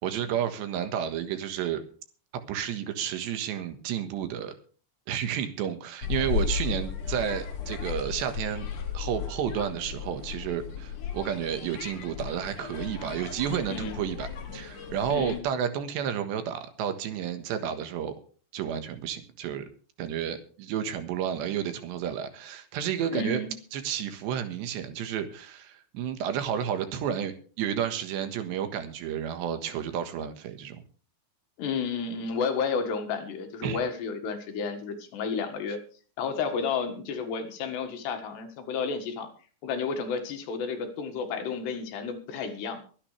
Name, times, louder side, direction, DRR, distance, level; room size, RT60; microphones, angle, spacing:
voice 1, 0.0-1.8 2.5-4.5 5.1-8.7 8.9-14.3 14.5-18.1 18.5-19.7 20.0-23.4 23.7-30.8 33.6-33.8, right 9 dB, 70° right, 8 dB, 3.5 m, -31 dB
sound 1, 6.0-15.4, left 7 dB, 50° left, 3.5 m, -35 dB
voice 2, 13.7-14.0 15.1-15.4 23.1-23.5 31.6-35.8 36.2-39.3 39.6-42.8, left 5 dB, 70° left, 6 dB, 3.8 m, -31 dB
23.5 x 9.8 x 3.3 m, 0.40 s
omnidirectional pair, 5.3 m